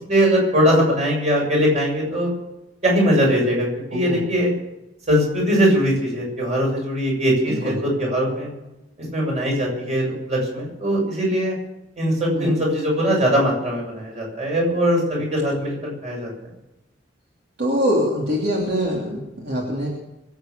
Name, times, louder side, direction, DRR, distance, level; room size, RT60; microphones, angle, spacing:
voice 1, 0.1-2.3 2.8-4.5 5.1-8.5 9.1-11.5 12.0-16.3, equal, 40° right, -2 dB, 7.2 m, -21 dB
voice 2, 3.9-4.2 7.5-7.8 12.3-12.6 15.5-15.6 17.6-19.9, equal, 65° right, -2 dB, 3.1 m, -24 dB
24.5 x 8.5 x 7.0 m, 0.98 s
head